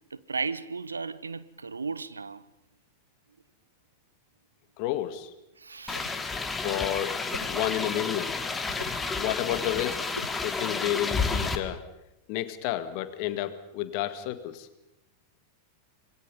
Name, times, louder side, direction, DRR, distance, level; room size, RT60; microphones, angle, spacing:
voice 1, 0.1-2.4 5.6-6.2, right 4 dB, 75° right, 0.9 m, -35 dB
voice 2, 4.8-5.3 6.6-8.3 9.2-10.1 10.4-11.8 12.3-14.7, left 13 dB, 45° left, 2.0 m, -31 dB
sound 1, 5.8-6.3 7.3-7.6 8.7-9.1 10.1-10.5, left 3 dB, 80° left, 1.9 m, -41 dB
sound 2, 5.9-11.6, left 4 dB, 10° left, 2.1 m, -31 dB
26.0 x 22.0 x 5.5 m
figure-of-eight pair, 90°, 0 cm